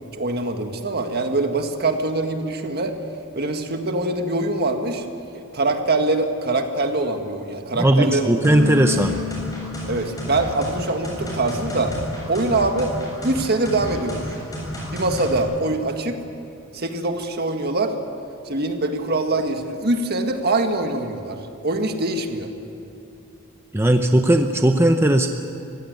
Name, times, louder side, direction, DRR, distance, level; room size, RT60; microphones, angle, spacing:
voice 1, 0.1-3.0 3.4-5.1 5.5-8.3 9.9-12.0 12.3-12.9 13.2-14.4 14.9-16.2 16.7-18.0 18.5-22.5, right 2 dB, 50° right, 5 dB, 1.8 m, -23 dB
voice 2, 7.8-9.2 23.7-25.3, right 1 dB, 10° right, 6 dB, 0.7 m, -17 dB
sound 1, 8.4-15.4, equal, 20° left, 7.1 m, -31 dB
Bass guitar, 8.5-11.6, left 4 dB, 85° right, 2.4 m, -32 dB
24.5 x 16.0 x 9.4 m, 2.7 s
head